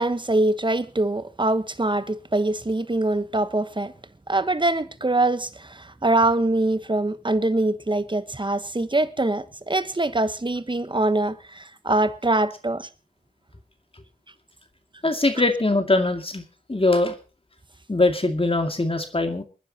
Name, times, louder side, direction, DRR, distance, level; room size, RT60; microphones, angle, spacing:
voice 1, 0.0-3.9 4.3-12.9, right 2 dB, 30° right, 1.2 m, -23 dB
voice 2, 15.0-16.4 16.7-17.1 17.9-19.4, left 2 dB, 35° left, 2.3 m, -22 dB
28.5 x 10.0 x 2.9 m
wide cardioid pair, 45°, 16 cm